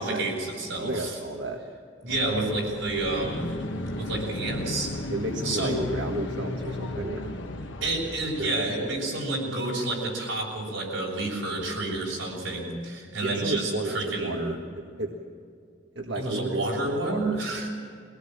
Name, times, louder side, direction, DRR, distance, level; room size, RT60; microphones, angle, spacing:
voice 1, 0.0-1.2 2.0-4.9 5.4-5.8 7.8-14.5 16.1-17.7, right 2 dB, 85° right, -1 dB, 6.7 m, -30 dB
voice 2, 0.7-1.6 5.1-7.4 8.4-8.9 13.2-15.1 15.9-17.6, right 1 dB, 65° right, 2 dB, 1.7 m, -33 dB
sound 1, 2.1-8.5, left 1 dB, 70° left, 1.7 m, -35 dB
23.5 x 18.0 x 7.5 m, 2.4 s
head